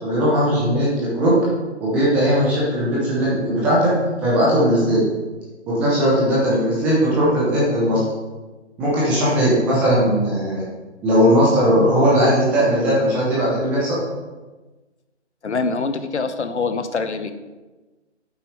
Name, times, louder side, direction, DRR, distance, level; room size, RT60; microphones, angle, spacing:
voice 1, 0.0-1.3 1.8-3.9 4.2-5.0 5.7-8.0 8.8-10.6 11.0-14.0, equal, 5° right, -7 dB, 0.6 m, -18 dB
voice 2, 15.4-17.3, left 4 dB, 75° left, 10 dB, 0.9 m, -24 dB
8.5 x 8.4 x 3.2 m, 1.2 s
figure-of-eight pair, 145°, 35 cm